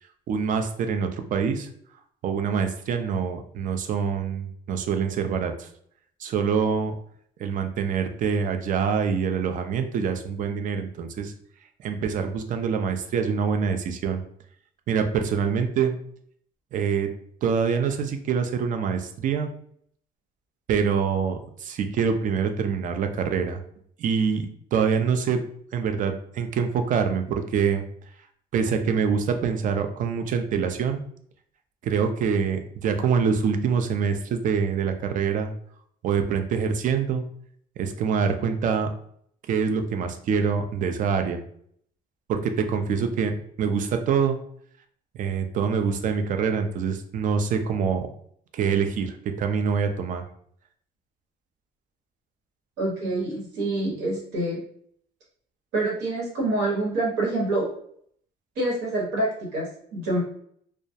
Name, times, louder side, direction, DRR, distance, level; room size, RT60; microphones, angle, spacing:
voice 1, 0.3-1.7 2.2-5.7 6.2-7.0 7.4-11.3 11.8-14.2 14.9-16.0 16.7-17.1 17.4-19.5 20.7-23.6 24.0-25.4 25.7-27.8 28.5-31.0 31.8-35.5 36.0-37.2 37.8-38.9 39.5-41.4 42.3-43.3 43.6-44.4 45.1-48.1 48.5-50.2, right 6 dB, 50° right, 6 dB, 0.4 m, -25 dB
voice 2, 52.8-54.6 55.7-57.7 58.6-60.2, right 2 dB, 85° right, -3 dB, 1.1 m, -26 dB
2.3 x 2.0 x 2.7 m, 0.63 s
cardioid pair, 110°, 17 cm